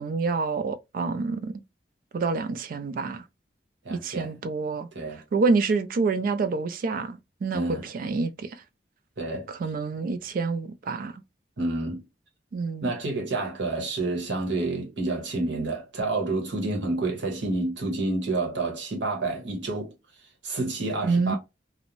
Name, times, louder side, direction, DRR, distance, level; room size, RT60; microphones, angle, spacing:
voice 1, 0.0-1.6 2.1-3.2 3.9-4.9 5.3-8.6 9.5-11.2 12.5-12.9 21.0-21.3, right 4 dB, 50° right, 0.3 m, -27 dB
voice 2, 3.8-4.3 4.9-5.2 7.5-7.8 9.2-9.5 11.6-12.0 12.8-19.9 20.4-21.4, right 2 dB, 90° right, 1.0 m, -29 dB
2.5 x 2.0 x 3.0 m
head